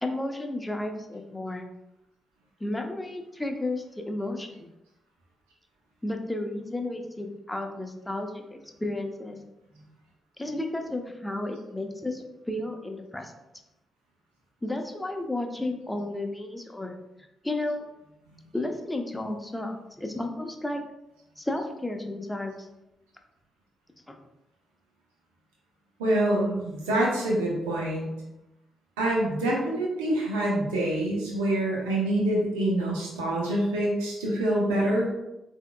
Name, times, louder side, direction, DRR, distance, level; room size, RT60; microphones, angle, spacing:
voice 1, 0.0-1.6 2.6-4.6 6.0-9.4 10.4-13.3 14.6-17.0 17.4-17.8 18.5-20.8 21.4-22.7 24.1-24.2, left 2 dB, 10° left, 4 dB, 0.8 m, -32 dB
voice 2, 26.0-28.1 29.0-35.1, right 1 dB, 85° right, -3 dB, 0.9 m, -26 dB
6.7 x 2.8 x 2.2 m, 0.91 s
hypercardioid pair, 40°, 0 cm